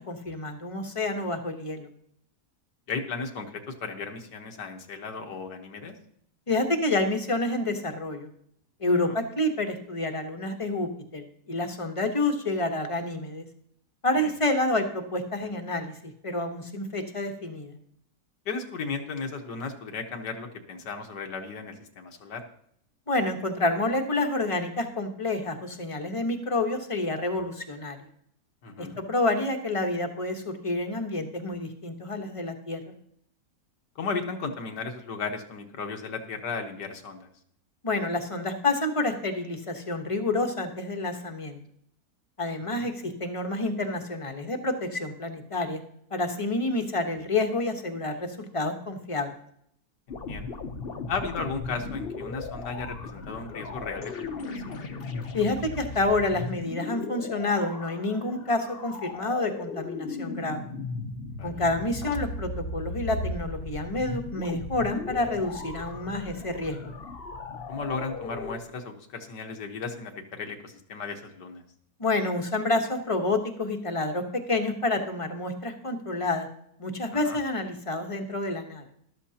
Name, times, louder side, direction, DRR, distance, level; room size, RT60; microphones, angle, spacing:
voice 1, 0.1-1.9 6.5-8.3 8.8-13.4 14.0-17.7 23.1-28.0 28.8-32.8 37.8-41.6 42.4-45.8 46.1-49.3 55.3-60.6 61.4-66.9 72.0-76.5 76.8-78.8, left 2 dB, 25° left, 5 dB, 1.0 m, -28 dB
voice 2, 2.9-6.0 9.0-9.2 14.2-14.3 18.5-22.4 28.6-29.0 34.0-37.3 42.7-42.9 50.1-50.6 51.1-54.9 61.4-61.6 67.7-71.6 77.1-77.4, left 4 dB, 85° left, 4 dB, 1.9 m, -35 dB
sound 1, 50.1-68.6, left 3 dB, 45° left, 0.9 m, -37 dB
13.5 x 12.5 x 2.8 m, 0.69 s
omnidirectional pair, 1.8 m